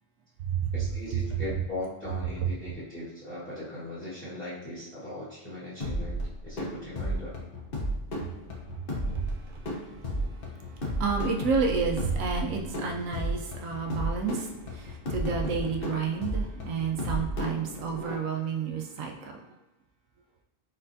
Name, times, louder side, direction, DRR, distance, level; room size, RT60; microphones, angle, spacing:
voice 1, 0.7-6.2 6.4-7.3, left 1 dB, 5° left, -11 dB, 1.5 m, -39 dB
sound 1, 5.8-18.1, equal, 50° left, 1.0 m, -33 dB
voice 2, 10.8-19.4, right 5 dB, 85° right, 1 dB, 1.1 m, -30 dB
4.3 x 4.2 x 2.7 m, 0.88 s
omnidirectional pair, 1.4 m